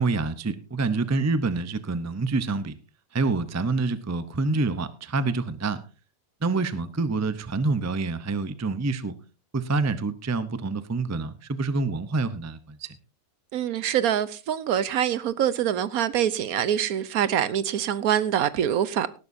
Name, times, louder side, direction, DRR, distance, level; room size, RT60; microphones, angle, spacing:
voice 1, 0.0-2.7 3.1-5.8 6.4-9.1 9.5-12.9, right 3 dB, 25° right, 0.3 m, -27 dB
voice 2, 13.5-19.2, right 10 dB, 70° right, 1.1 m, -25 dB
18.0 x 11.0 x 2.7 m
omnidirectional pair, 1.7 m